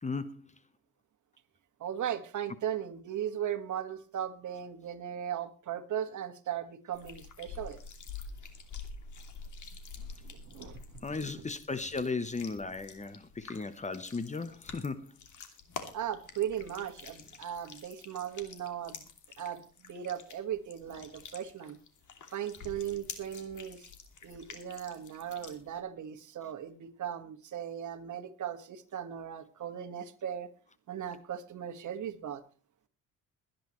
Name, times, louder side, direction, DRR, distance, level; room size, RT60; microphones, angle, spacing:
voice 1, 0.0-0.5 11.0-15.2, left 4 dB, 20° left, 1.0 m, -36 dB
voice 2, 1.8-7.8 10.2-10.8 11.2-11.3 15.9-19.1 19.4-21.8 22.3-23.9 24.2-30.5 30.9-32.4, right 10 dB, 60° right, 1.8 m, -37 dB
sound 1, 6.9-25.8, left 5 dB, 60° left, 2.9 m, -48 dB
22.5 x 10.5 x 3.2 m
cardioid pair, 100°, 35 cm